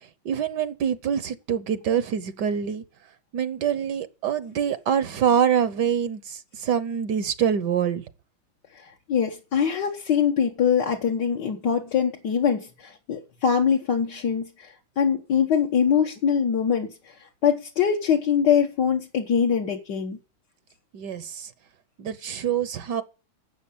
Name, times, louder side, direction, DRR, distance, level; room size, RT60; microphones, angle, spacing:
voice 1, 0.2-2.8 3.3-8.0 20.9-21.5 22.0-23.0, right 8 dB, 65° right, 1.3 m, -25 dB
voice 2, 8.8-17.2 17.4-20.2, left 7 dB, 65° left, 1.8 m, -23 dB
11.5 x 7.6 x 8.5 m
omnidirectional pair, 2.1 m